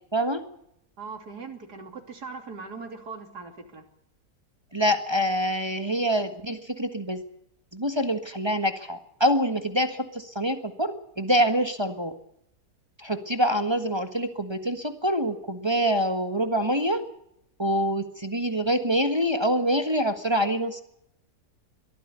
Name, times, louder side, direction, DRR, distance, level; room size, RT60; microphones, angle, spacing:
voice 1, 0.1-0.4 4.7-7.2 7.7-12.1 13.0-17.0 17.6-20.8, equal, 15° right, 7 dB, 1.5 m, -25 dB
voice 2, 1.0-3.8, right 4 dB, 70° right, 5 dB, 3.5 m, -40 dB
22.5 x 14.5 x 8.2 m, 0.75 s
omnidirectional pair, 1.8 m